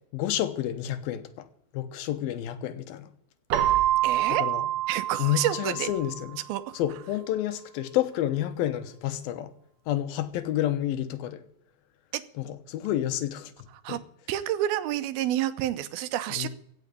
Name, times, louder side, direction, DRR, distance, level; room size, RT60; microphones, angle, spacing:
voice 1, 0.1-1.5 1.7-3.1 4.3-4.6 5.2-6.4 6.7-9.5 9.9-11.4 12.4-13.5 13.9-14.0 16.4-16.5, left 12 dB, 80° left, 2.8 m, -29 dB
Keyboard (musical), 3.5-6.2, right 13 dB, 65° right, 1.8 m, -26 dB
voice 2, 4.0-4.4 4.9-5.9 6.5-6.8 12.1-12.2 13.8-14.0 14.3-16.5, right 13 dB, 85° right, 2.8 m, -29 dB
16.5 x 6.4 x 9.6 m
omnidirectional pair, 4.2 m